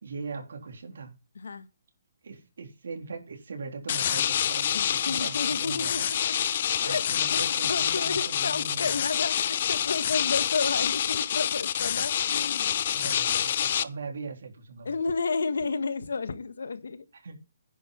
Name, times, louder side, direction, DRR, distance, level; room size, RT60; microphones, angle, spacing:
voice 1, 0.0-1.2 2.2-6.1 6.3-9.0 12.9-14.9 17.2-17.4, right 4 dB, 75° right, 3.7 m, -40 dB
voice 2, 1.3-1.7 4.7-6.3 6.8-7.0 7.3-12.8 14.8-17.0, left 4 dB, 85° left, 1.5 m, -32 dB
sound 1, 3.9-13.8, left 9 dB, 45° left, 0.6 m, -27 dB
10.5 x 6.8 x 5.7 m
hypercardioid pair, 165°, 0 cm